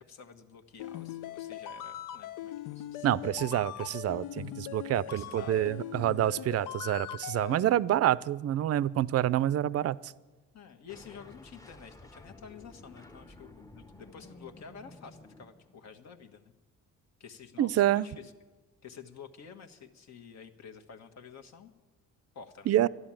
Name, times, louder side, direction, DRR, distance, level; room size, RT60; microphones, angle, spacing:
voice 1, 0.0-3.1 3.4-3.9 5.1-5.7 10.5-16.5 17.2-18.3 18.8-21.7 22.3-22.7, left 6 dB, 60° left, 6 dB, 1.4 m, -50 dB
sound 1, 0.8-7.6, left 11 dB, 85° left, 0.6 m, -40 dB
voice 2, 3.0-10.1 17.6-18.1 22.7-22.9, right 12 dB, 55° right, 20 dB, 0.5 m, -27 dB
sound 2, 10.9-16.0, left 2 dB, 10° left, 0.7 m, -53 dB
13.0 x 11.5 x 8.8 m, 1.2 s
cardioid pair, 90°, 30 cm